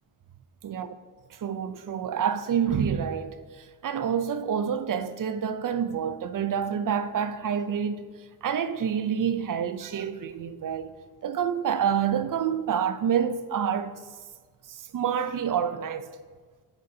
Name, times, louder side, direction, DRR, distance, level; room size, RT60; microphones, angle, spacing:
voice 1, 1.3-8.0 8.4-10.9 11.2-13.9 14.7-16.1, right 8 dB, 45° right, 0.6 m, -28 dB
12.0 x 5.1 x 2.8 m
cardioid pair, 65°, 44 cm